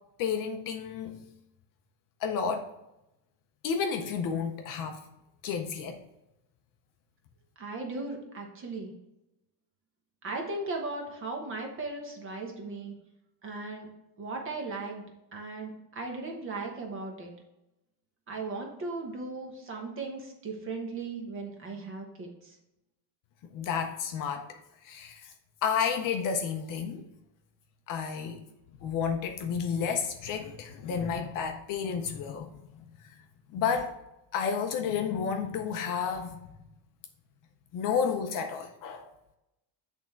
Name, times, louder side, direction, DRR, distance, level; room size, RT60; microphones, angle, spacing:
voice 1, 0.2-1.2 2.2-2.7 3.6-5.0 5.4-6.0 23.5-24.5 24.8-25.3 25.6-27.0 27.9-28.4 28.8-32.5 33.5-33.9 34.3-36.4 37.7-39.1, left 6 dB, 45° left, 5 dB, 0.6 m, -31 dB
voice 2, 7.6-8.9 10.2-12.9 13.4-13.9 14.2-15.0 15.3-17.3 18.3-22.5, right 3 dB, 25° right, 2 dB, 1.1 m, -37 dB
8.5 x 3.6 x 4.4 m, 0.91 s
cardioid pair, 180°, 47 cm